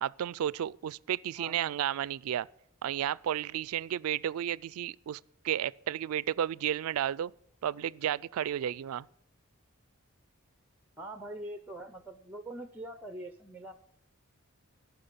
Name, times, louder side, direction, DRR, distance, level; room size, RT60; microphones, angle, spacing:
voice 1, 0.0-2.5 2.8-7.3 7.6-9.1, right 10 dB, 85° right, 0.3 m, -32 dB
voice 2, 11.0-13.7, right 1 dB, 10° right, 0.5 m, -43 dB
14.0 x 6.1 x 6.7 m
head